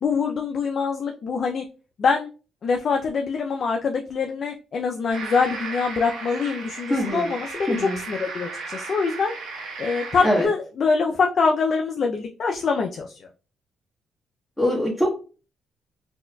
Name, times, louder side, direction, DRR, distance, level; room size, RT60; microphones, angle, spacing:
voice 1, 0.0-1.6 2.0-2.3 2.6-9.3 9.8-13.2, left 5 dB, 50° left, 2 dB, 0.4 m, -24 dB
sound 1, 5.1-10.5, right 4 dB, 90° right, 1.3 m, -35 dB
voice 2, 6.9-7.3 7.7-8.0 10.2-10.4 14.6-15.2, equal, 5° left, -6 dB, 1.2 m, -22 dB
4.3 x 2.3 x 2.2 m, 0.35 s
cardioid pair, 90°, 0 cm